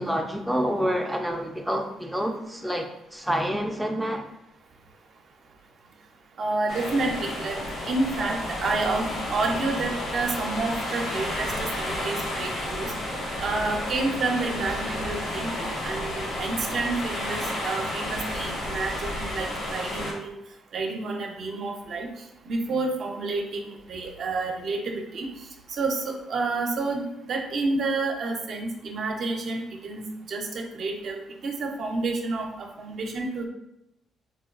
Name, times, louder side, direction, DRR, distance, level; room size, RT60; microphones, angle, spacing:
voice 1, 0.0-4.2, equal, 5° right, 1 dB, 0.3 m, -28 dB
voice 2, 6.4-7.6 7.8-12.9 13.4-20.4 20.7-22.1 22.4-31.2 31.4-33.5, right 3 dB, 60° right, 2 dB, 0.5 m, -29 dB
sound 1, 6.7-20.1, left 1 dB, 85° left, 1.2 m, -31 dB
4.1 x 2.2 x 2.4 m, 0.85 s
cardioid pair, 90°, 0 cm